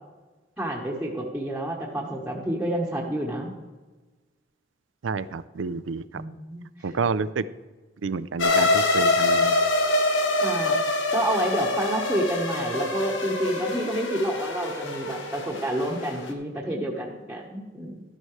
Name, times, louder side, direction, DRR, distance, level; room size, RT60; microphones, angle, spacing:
voice 1, 0.6-3.5 6.1-7.0 10.4-10.8 11.1-18.0, right 1 dB, 5° right, -4 dB, 1.2 m, -29 dB
voice 2, 5.0-6.0 6.8-7.4 8.0-8.7 8.9-9.5, right 4 dB, 85° right, 15 dB, 0.5 m, -28 dB
sound 1, 8.4-16.3, left 2 dB, 80° left, 1.3 m, -25 dB
12.5 x 11.0 x 3.2 m, 1.2 s
head